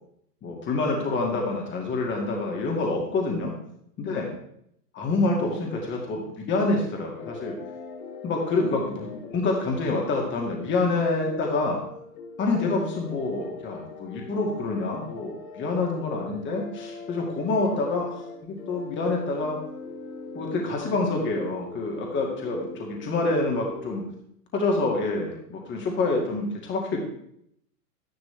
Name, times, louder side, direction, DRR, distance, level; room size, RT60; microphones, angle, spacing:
voice 1, 0.4-3.5 4.0-4.3 4.9-6.2 6.5-7.5 8.2-11.8 12.4-19.6 20.3-24.0 24.5-27.0, left 3 dB, 25° left, 0 dB, 2.1 m, -27 dB
sound 1, 7.2-24.0, left 3 dB, 60° left, 1.8 m, -41 dB
12.0 x 11.0 x 3.4 m, 0.71 s
hypercardioid pair, 110°, 48 cm